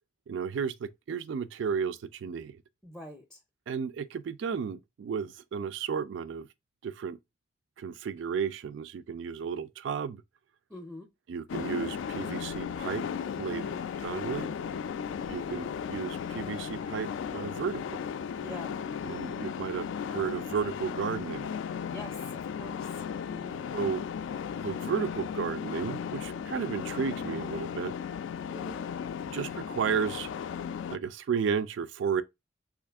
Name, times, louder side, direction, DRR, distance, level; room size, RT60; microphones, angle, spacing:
voice 1, 0.3-2.6 3.7-6.5 6.8-7.2 7.8-10.2 11.3-13.0 13.4-13.7 14.0-14.5 15.3-18.0 19.0-21.5 23.7-24.0 24.6-27.9 29.3-30.3 30.9-32.2, right 6 dB, 75° right, 0.3 m, -33 dB
voice 2, 2.8-3.4 10.7-11.1 13.5-13.8 15.4-15.8 18.4-18.7 21.9-23.0 23.3-23.6 28.5-28.8, left 1 dB, 5° left, 0.4 m, -45 dB
sound 1, 11.5-31.0, left 7 dB, 85° left, 0.3 m, -36 dB
3.4 x 2.4 x 3.4 m
head